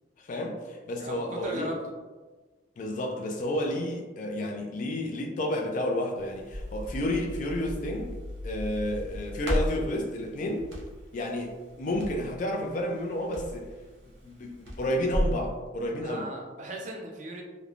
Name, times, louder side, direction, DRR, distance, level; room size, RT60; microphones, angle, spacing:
voice 1, 0.2-1.7 2.8-8.1 8.4-10.7 11.1-13.7 14.2-16.3, left 1 dB, 40° left, 2 dB, 0.3 m, -31 dB
voice 2, 1.0-1.8 16.0-17.4, right 1 dB, 40° right, 0 dB, 0.4 m, -37 dB
Crackle, 6.2-15.4, equal, 90° right, 0.8 m, -35 dB
3.0 x 2.0 x 2.4 m, 1.3 s
head